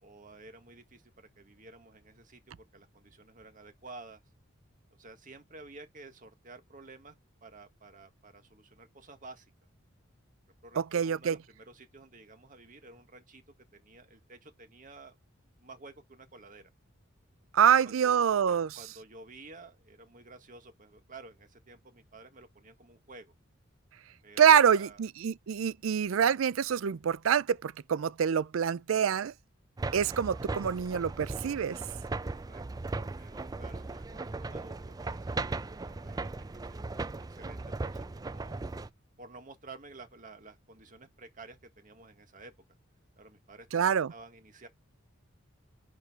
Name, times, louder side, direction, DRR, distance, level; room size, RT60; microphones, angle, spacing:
voice 1, 0.0-4.2 4.9-7.2 7.4-9.5 10.6-13.4 13.7-15.2 15.6-16.6 17.6-18.2 18.7-23.3 24.2-25.0 32.3-32.6 33.2-38.6 39.2-42.5 43.2-44.7, right 3 dB, 40° right, 1.9 m, -52 dB
voice 2, 10.9-11.4 17.5-18.8 24.4-29.3 29.9-31.8 43.7-44.1, right 8 dB, 80° right, 0.4 m, -26 dB
sound 1, 29.8-38.9, right 3 dB, 20° right, 0.4 m, -37 dB
10.5 x 4.7 x 2.5 m
head